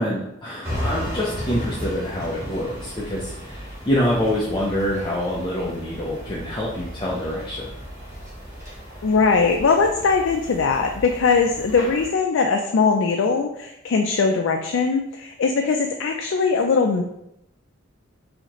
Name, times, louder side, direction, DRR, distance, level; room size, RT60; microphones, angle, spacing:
voice 1, 0.0-7.7, equal, 25° left, -6 dB, 0.6 m, -26 dB
sound 1, 0.6-12.1, equal, 15° right, 1.1 m, -35 dB
voice 2, 9.0-17.0, left 4 dB, 70° left, 3 dB, 0.4 m, -20 dB
4.0 x 2.8 x 2.9 m, 0.81 s
head